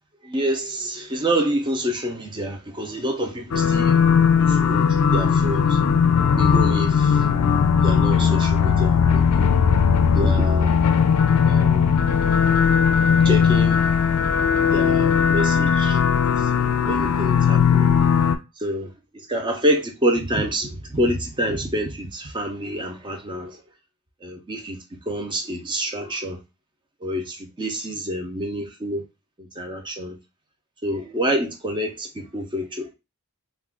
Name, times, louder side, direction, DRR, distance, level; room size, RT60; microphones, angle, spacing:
voice 1, 0.2-4.0 4.4-5.8 6.4-7.4 7.8-9.5 10.1-10.8 11.4-11.9 13.2-13.8 14.7-16.0 16.4-18.0 18.6-23.6 24.2-24.8 25.1-26.4 27.0-29.0 29.4-30.2 30.8-32.9, equal, 20° right, 0.5 m, -27 dB
sound 1, 3.5-18.4, left 6 dB, 80° left, 0.4 m, -18 dB
2.4 x 2.3 x 3.6 m
head